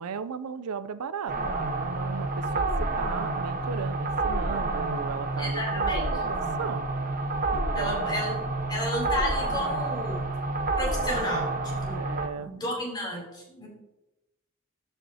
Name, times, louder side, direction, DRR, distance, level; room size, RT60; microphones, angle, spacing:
voice 1, 0.0-6.9 7.5-8.1 11.9-12.5, right 6 dB, 85° right, 14 dB, 0.5 m, -36 dB
sound 1, 1.3-12.3, right 2 dB, 40° right, 0.7 m, -29 dB
voice 2, 5.4-6.1 7.7-8.4 8.7-10.2 10.8-12.0 12.3-13.7, left 1 dB, 20° left, -3 dB, 3.0 m, -32 dB
13.0 x 5.8 x 2.8 m, 0.96 s
head